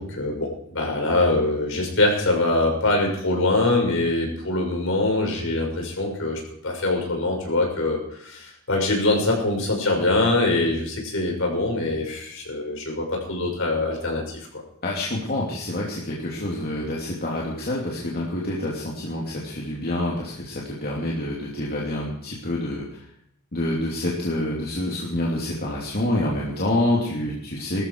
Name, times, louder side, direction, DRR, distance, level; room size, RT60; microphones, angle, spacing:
voice 1, 0.0-14.6, left 2 dB, 65° left, 0 dB, 6.4 m, -23 dB
voice 2, 14.8-23.0 23.5-27.9, left 1 dB, 45° left, -4 dB, 3.0 m, -27 dB
19.0 x 13.5 x 4.7 m, 0.70 s
head